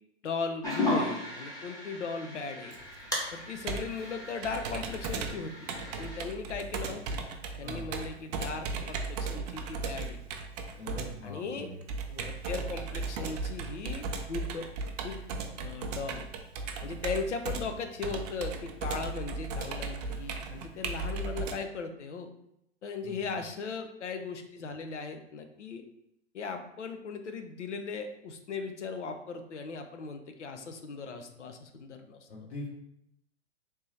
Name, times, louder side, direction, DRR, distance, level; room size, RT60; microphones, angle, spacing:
voice 1, 0.2-2.8 3.3-5.7 6.0-7.2 7.6-10.2 11.2-11.7 12.1-14.7 15.0-15.2 15.6-16.3 16.8-22.3 22.8-25.8 26.3-32.3, left 4 dB, 85° left, 6 dB, 0.6 m, -38 dB
sound 1, 0.6-6.2, left 1 dB, 10° left, 0.9 m, -36 dB
Computer keyboard, 2.7-21.6, right 4 dB, 35° right, 0.4 m, -36 dB
voice 2, 10.8-11.8 23.0-23.2 32.3-32.7, left 2 dB, 60° left, -5 dB, 1.5 m, -42 dB
3.4 x 2.8 x 3.2 m, 0.78 s
hypercardioid pair, 115°, 35 cm